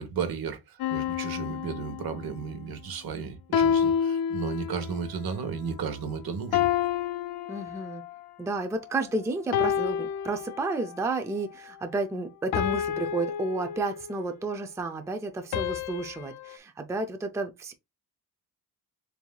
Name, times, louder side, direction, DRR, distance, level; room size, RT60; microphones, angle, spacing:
voice 1, 0.0-6.7, right 6 dB, 80° right, 1.1 m, -34 dB
sound 1, 0.8-2.5 3.5-5.0 6.5-8.2 9.5-11.0 12.5-14.3 15.5-16.6, left 8 dB, 90° left, 0.5 m, -29 dB
voice 2, 7.5-8.0 8.4-17.7, right 2 dB, 10° right, 0.4 m, -31 dB
6.9 x 2.7 x 2.2 m
wide cardioid pair, 170°, 36 cm